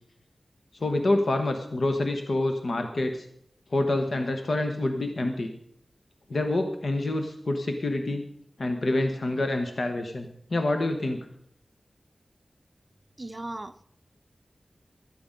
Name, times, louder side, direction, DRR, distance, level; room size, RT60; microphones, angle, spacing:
voice 1, 0.7-3.3 3.7-5.5 6.3-8.2 8.6-11.3, left 2 dB, 60° left, 5 dB, 1.0 m, -27 dB
voice 2, 13.2-13.8, right 2 dB, 30° right, 9 dB, 0.6 m, -37 dB
13.0 x 9.5 x 5.2 m, 0.70 s
wide cardioid pair, 80°, 0 cm